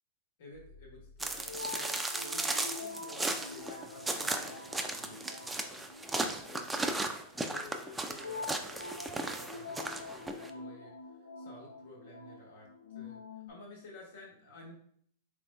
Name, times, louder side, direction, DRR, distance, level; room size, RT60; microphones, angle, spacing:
voice 1, 0.4-10.9 11.2-12.7 12.9-13.2 13.5-14.7, left 1 dB, 65° left, -1 dB, 1.1 m, -52 dB
sound 1, 0.5-13.5, left 4 dB, 80° left, 0.4 m, -46 dB
sound 2, 1.2-10.5, right 2 dB, 10° right, 0.3 m, -36 dB
3.5 x 3.2 x 2.2 m, 0.63 s
hypercardioid pair, 100°, 0 cm